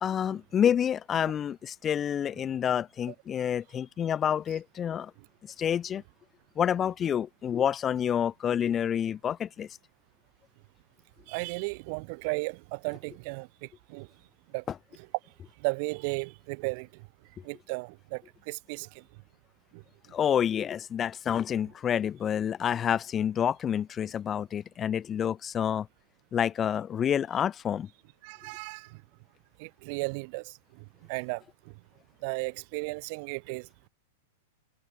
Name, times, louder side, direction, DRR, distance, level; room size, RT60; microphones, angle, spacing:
voice 1, 0.0-5.1 5.4-6.0 6.6-9.7 20.1-25.9 26.3-27.9, left 9 dB, 15° left, 0.5 m, -28 dB
voice 2, 11.3-14.1 14.5-14.6 15.6-17.1 17.4-19.0 19.7-19.8 28.2-29.0 29.6-31.7 32.2-33.9, right 32 dB, 35° right, 2.0 m, -35 dB
supercardioid pair, 170°, 0 cm